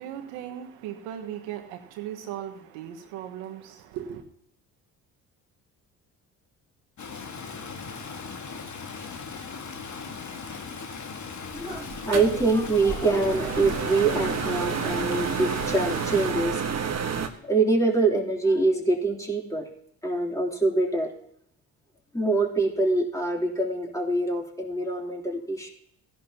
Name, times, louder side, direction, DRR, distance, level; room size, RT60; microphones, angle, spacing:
voice 1, 0.0-4.2, right 10 dB, 80° right, 1.5 m, -37 dB
Stream, 7.0-16.3, left 5 dB, 45° left, 1.7 m, -38 dB
voice 2, 11.5-16.6 17.4-19.7 20.0-21.1 22.1-25.7, right 3 dB, 10° left, 3.3 m, -25 dB
sound 1, 11.5-17.3, right 6 dB, 40° right, 1.4 m, -30 dB
16.0 x 11.0 x 2.9 m
hypercardioid pair, 55°, 42 cm